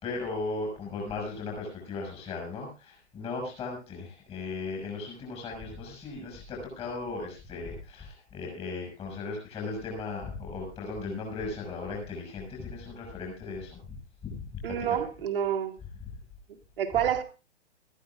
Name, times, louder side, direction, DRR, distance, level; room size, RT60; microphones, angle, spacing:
voice 1, 0.0-13.8 14.2-15.0, left 3 dB, 15° left, 0 dB, 6.1 m, -37 dB
voice 2, 14.6-15.8 16.8-17.2, right 9 dB, 50° right, 4 dB, 2.1 m, -28 dB
20.0 x 14.5 x 2.5 m, 0.30 s
figure-of-eight pair, 130°, 35 cm